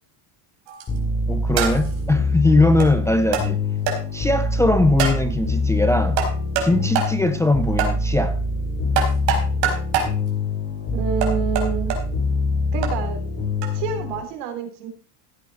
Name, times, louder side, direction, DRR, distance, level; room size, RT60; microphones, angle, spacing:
sound 1, 0.7-1.0 1.6-2.0 2.8-2.9 3.3-3.5 3.9-4.0 5.0-5.2 6.2-6.7 6.9-7.1 7.8-7.9 8.9-10.1 11.2-12.0 12.8-12.9 13.6-13.7, right 6 dB, 60° right, 4.2 m, -23 dB
sound 2, 0.9-14.2, left 2 dB, 25° left, 3.7 m, -24 dB
voice 1, 1.3-3.6 4.1-6.2 6.6-8.4, left 2 dB, 5° left, 0.5 m, -20 dB
voice 2, 10.9-11.9 12.7-13.2 13.7-14.9, right 6 dB, 80° right, 3.5 m, -28 dB
15.0 x 8.3 x 4.2 m
cardioid pair, 145°, 48 cm